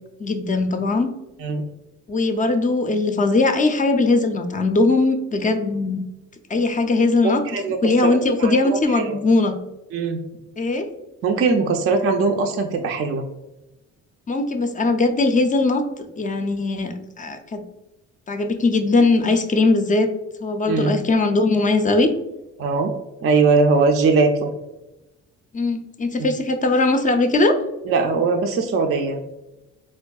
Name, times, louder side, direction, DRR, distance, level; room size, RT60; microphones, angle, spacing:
voice 1, 0.2-1.1 2.1-6.1 6.5-7.4 7.8-9.6 10.6-10.9 14.3-15.8 16.2-17.6 18.3-20.1 20.4-22.1 25.5-27.6, left 3 dB, 25° left, 7 dB, 0.4 m, -20 dB
voice 2, 7.2-7.8 8.0-9.2 9.9-10.2 11.2-13.2 20.7-20.9 22.6-22.9 23.2-24.5 26.2-26.3 27.9-29.2, right 4 dB, 50° right, 4 dB, 0.4 m, -20 dB
4.3 x 2.6 x 2.3 m, 0.96 s
cardioid pair, 90°, 30 cm